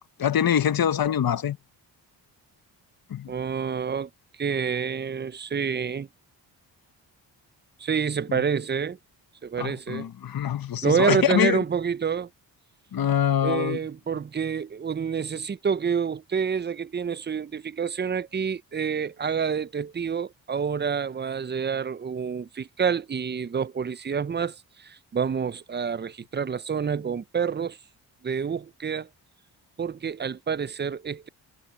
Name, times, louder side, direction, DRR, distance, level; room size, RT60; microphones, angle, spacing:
voice 1, 0.2-1.6 3.1-3.3 8.3-8.4 9.6-11.6 12.9-13.8, left 9 dB, 50° left, 1.1 m, -24 dB
voice 2, 3.3-4.1 4.4-6.1 7.8-9.0 9.4-10.1 10.8-12.3 13.4-27.8 28.2-29.1 29.8-31.3, right 6 dB, 25° right, 0.6 m, -28 dB
cardioid pair, 60°, 44 cm